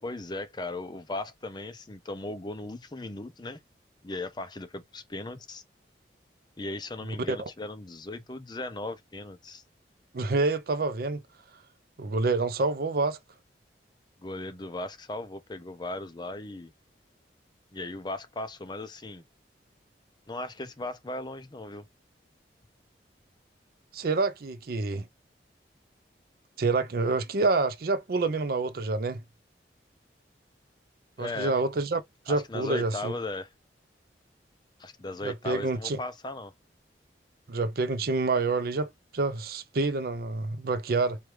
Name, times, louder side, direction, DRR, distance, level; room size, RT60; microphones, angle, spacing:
voice 1, 0.0-3.6 4.0-5.6 6.6-9.6 14.2-16.7 17.7-19.2 20.3-21.9 31.2-31.6 32.3-33.5 34.8-36.5, left 2 dB, 25° left, 0.5 m, -37 dB
voice 2, 10.1-11.2 12.0-13.2 23.9-25.0 26.6-29.2 31.2-33.1 35.2-36.0 37.5-41.2, right 3 dB, 55° right, 0.5 m, -27 dB
4.6 x 2.4 x 3.1 m
head